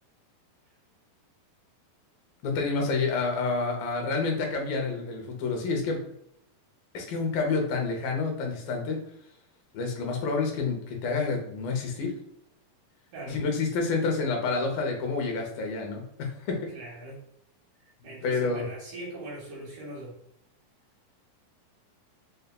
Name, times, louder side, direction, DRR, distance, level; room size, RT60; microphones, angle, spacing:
voice 1, 2.4-6.0 6.9-9.0 9.7-12.1 13.3-16.6 18.2-18.6, left 4 dB, 75° left, 2 dB, 2.3 m, -28 dB
voice 2, 16.7-17.2 17.8-20.2, right 1 dB, 80° right, -3 dB, 1.8 m, -41 dB
6.5 x 2.3 x 2.2 m, 0.73 s
omnidirectional pair, 4.5 m